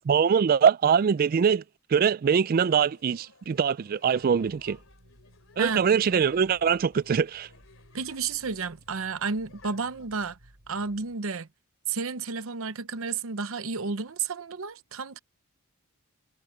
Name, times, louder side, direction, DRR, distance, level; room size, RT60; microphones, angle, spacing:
voice 1, 0.1-1.6 1.9-4.8 5.6-7.5, right 7 dB, 45° right, 0.3 m, -23 dB
sound 1, 2.6-10.1, left 4 dB, 65° left, 3.6 m, -58 dB
sound 2, 4.2-11.2, equal, 85° right, 5.3 m, -57 dB
voice 2, 5.6-5.9 7.9-10.4 10.7-11.5 11.9-15.2, right 5 dB, 70° right, 0.8 m, -31 dB
head